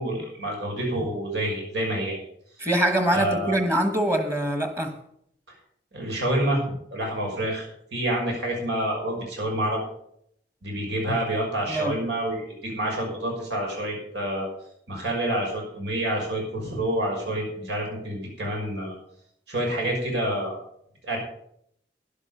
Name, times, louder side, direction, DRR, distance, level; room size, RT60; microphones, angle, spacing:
voice 1, 0.0-2.2 3.1-3.5 5.9-9.9 10.6-14.5 14.9-18.9 19.5-20.6 21.0-21.2, right 1 dB, 85° right, 6.0 m, -28 dB
voice 2, 2.6-5.0 11.7-12.0, right 1 dB, 15° right, 1.3 m, -24 dB
12.0 x 11.0 x 5.6 m
head